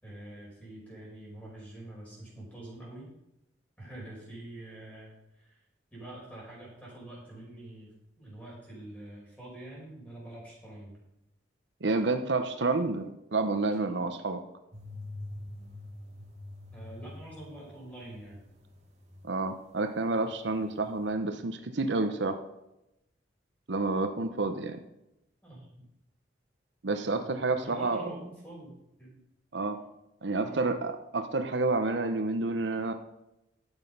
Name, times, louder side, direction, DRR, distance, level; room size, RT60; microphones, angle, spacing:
voice 1, 0.0-3.1 3.8-5.6 5.9-11.0 13.9-14.0 16.7-18.4 25.4-25.8 27.2-28.7 29.0-29.1 30.4-30.7, right 1 dB, 10° left, -4 dB, 5.2 m, -46 dB
voice 2, 11.8-14.4 19.2-22.4 23.7-24.8 26.8-28.1 29.5-29.8 30.2-32.9, right 3 dB, 75° right, 7 dB, 0.9 m, -29 dB
sound 1, 14.7-19.8 20.0-21.1, left 2 dB, 35° right, 2.3 m, -46 dB
12.0 x 8.1 x 5.4 m, 0.88 s
head